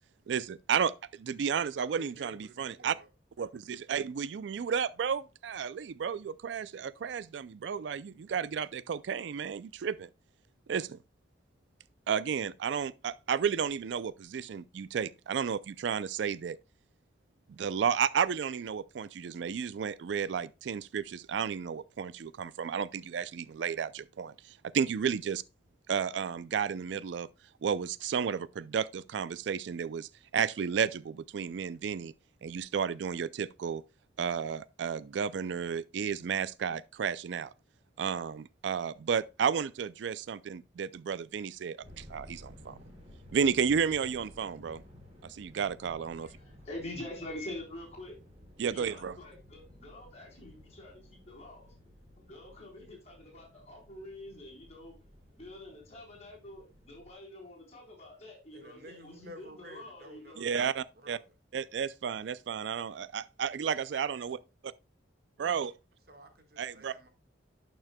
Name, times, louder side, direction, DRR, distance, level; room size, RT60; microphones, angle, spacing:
voice 1, 0.3-3.0 3.4-10.1 10.7-11.0 12.1-16.6 17.5-25.4 25.9-27.3 27.6-32.1 32.4-33.8 34.2-37.5 38.0-42.8 43.3-44.8 45.2-46.3 48.6-49.2 60.4-61.2 61.5-64.4 65.4-65.7 66.6-66.9, right 7 dB, 75° right, 0.4 m, -32 dB
voice 2, 1.8-3.1 58.5-61.3 66.1-67.1, equal, 55° right, 1.6 m, -51 dB
sound 1, 41.8-57.1, left 1 dB, 35° right, 2.9 m, -55 dB
voice 3, 46.2-48.2 48.6-51.7 52.2-54.9 55.3-60.5, left 1 dB, 35° left, 3.9 m, -46 dB
11.5 x 6.1 x 2.2 m
head